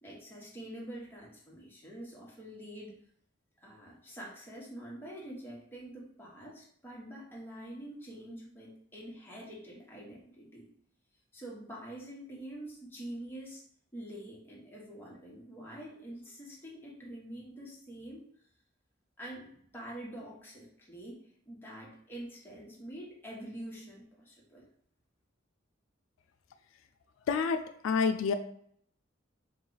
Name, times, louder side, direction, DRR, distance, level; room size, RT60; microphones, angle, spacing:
voice 1, 0.0-3.0 3.6-10.7 11.3-13.6 13.9-18.2 19.2-24.6, right 1 dB, 10° left, -5 dB, 1.2 m, -46 dB
voice 2, 27.3-28.3, left 5 dB, 85° left, 9 dB, 0.3 m, -28 dB
4.7 x 2.3 x 3.9 m, 0.66 s
head